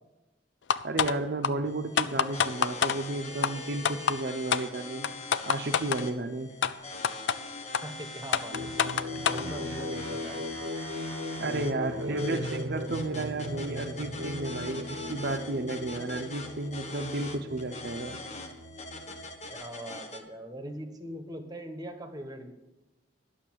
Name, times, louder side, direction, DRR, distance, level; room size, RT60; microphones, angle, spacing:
sound 1, 0.7-1.1 1.4-1.5 2.0-3.0 3.4-3.5 3.9-4.2 4.5-4.6 5.0-6.0 6.6-6.7 7.0-7.4 7.7-7.8 8.3-9.4, left 7 dB, 75° left, 0.5 m, -26 dB
voice 1, 0.8-5.1 5.5-6.5 11.4-18.2, right 2 dB, 55° right, 5 dB, 0.8 m, -33 dB
sound 2, 1.7-20.2, left 2 dB, 40° left, 1.3 m, -42 dB
voice 2, 7.8-10.7 11.7-12.4 19.5-22.5, right 1 dB, 20° right, 6 dB, 1.2 m, -42 dB
sound 3, 8.5-19.5, left 1 dB, 80° right, 1.0 m, -38 dB
11.5 x 6.8 x 7.5 m, 1.0 s
head